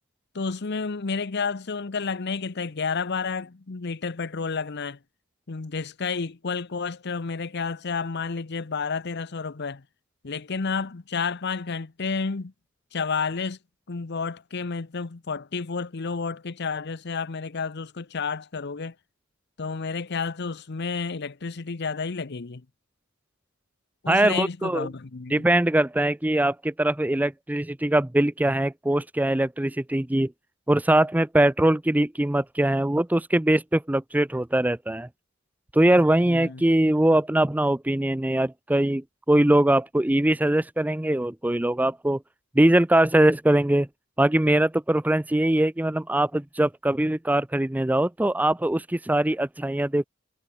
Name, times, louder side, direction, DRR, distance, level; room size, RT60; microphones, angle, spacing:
voice 1, 0.3-5.0 5.5-9.8 10.2-12.5 12.9-13.6 13.9-18.9 19.6-22.6 24.0-25.5 36.3-36.6, left 5 dB, 55° left, 0.8 m, -30 dB
voice 2, 24.1-24.9 25.3-30.3 30.7-35.1 35.7-42.2 42.6-43.9 44.2-50.0, right 1 dB, 10° right, 0.5 m, -22 dB
head